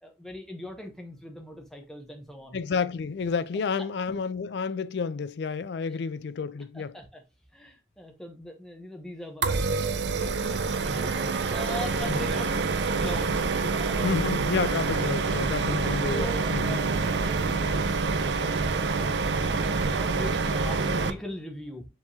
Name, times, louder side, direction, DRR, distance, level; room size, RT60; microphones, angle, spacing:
voice 1, 0.0-2.6 3.8-3.9 5.9-6.0 6.7-7.2 7.5-14.7 16.1-16.9 17.2-18.0 18.4-18.5 19.0-21.8, left 1 dB, 5° left, 0.9 m, -41 dB
voice 2, 2.5-6.9 12.1-12.2 14.0-16.8, left 5 dB, 65° left, 0.4 m, -30 dB
sound 1, 9.4-21.1, right 4 dB, 70° right, 0.5 m, -27 dB
4.7 x 3.5 x 2.7 m
head